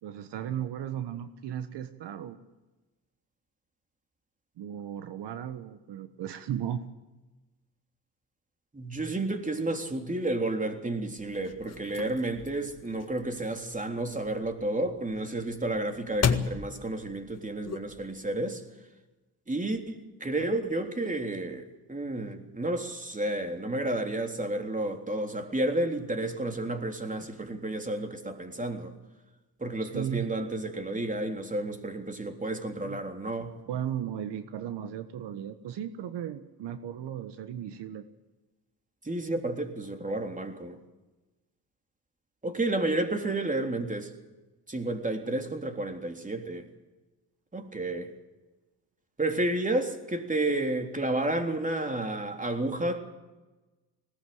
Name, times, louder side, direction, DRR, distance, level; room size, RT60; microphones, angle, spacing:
voice 1, 0.0-2.4 4.6-6.8 29.8-30.3 32.8-33.0 33.7-38.0, right 10 dB, 70° right, 10 dB, 1.5 m, -36 dB
voice 2, 8.7-18.6 19.5-28.9 29.6-33.6 39.1-40.8 42.4-44.1 44.7-46.7 47.5-48.1 49.2-53.0, right 2 dB, 20° right, 5 dB, 3.6 m, -31 dB
sound 1, 11.2-18.3, left 6 dB, 35° left, 1.9 m, -36 dB
20.5 x 18.0 x 7.9 m, 1.2 s
supercardioid pair, 65°, 42 cm